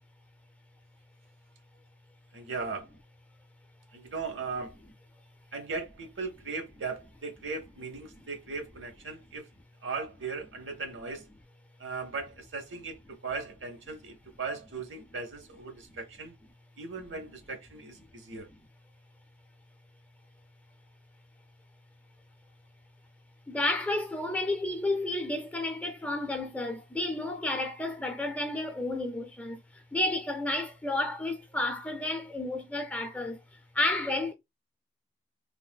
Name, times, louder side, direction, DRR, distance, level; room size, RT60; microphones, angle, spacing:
voice 1, 2.3-2.9 3.9-4.7 5.5-9.5 9.8-11.3 11.8-16.3 16.8-18.5, right 4 dB, 85° right, 0.7 m, -38 dB
voice 2, 23.5-33.4 33.7-34.3, left 2 dB, 10° left, 0.4 m, -31 dB
3.2 x 2.5 x 2.2 m
head